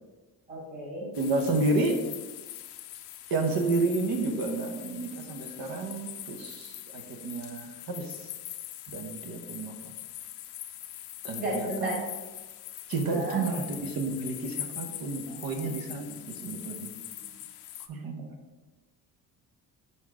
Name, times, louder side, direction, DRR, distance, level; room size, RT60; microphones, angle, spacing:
voice 1, 0.5-1.1 11.4-12.0 13.1-13.4 15.0-15.5, right 1 dB, 25° right, -5 dB, 2.1 m, -35 dB
sound 1, 1.1-17.9, left 13 dB, 75° left, 0.6 m, -42 dB
voice 2, 1.2-2.0 3.3-8.2 8.9-9.7 11.2-12.0 12.9-16.9 17.9-18.3, right 3 dB, 60° right, 5 dB, 1.0 m, -31 dB
5.7 x 4.3 x 4.8 m, 1.2 s
cardioid pair, 165°, 40 cm